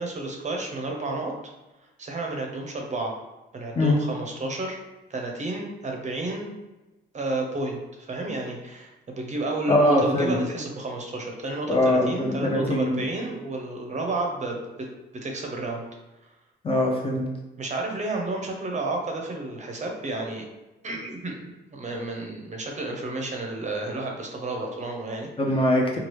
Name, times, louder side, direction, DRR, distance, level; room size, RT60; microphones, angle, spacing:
voice 1, 0.0-1.3 2.0-3.1 3.5-4.8 5.1-6.5 7.1-14.6 15.1-15.8 17.6-20.4 20.8-25.3, right 2 dB, 35° right, 1 dB, 0.6 m, -31 dB
voice 2, 9.7-10.4 11.7-13.0 16.6-17.2 25.4-26.0, left 1 dB, 30° left, -1 dB, 0.6 m, -22 dB
3.1 x 2.3 x 3.1 m, 1.1 s
cardioid pair, 90°, 20 cm